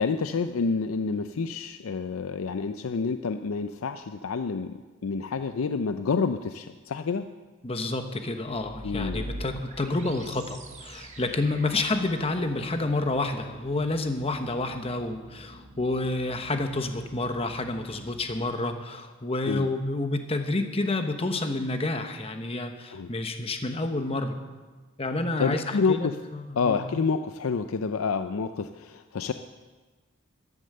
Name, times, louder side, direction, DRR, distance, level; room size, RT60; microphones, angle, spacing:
voice 1, 0.0-4.7 5.0-7.3 8.8-9.3 19.5-19.7 22.9-23.1 25.4-26.2 26.6-29.3, left 5 dB, 90° left, 9 dB, 0.5 m, -28 dB
voice 2, 7.6-24.4 25.0-26.9, left 2 dB, 30° left, 7 dB, 1.0 m, -29 dB
sound 1, 8.4-18.4, right 1 dB, 35° right, 1.5 m, -44 dB
13.0 x 11.0 x 6.7 m, 1.3 s
head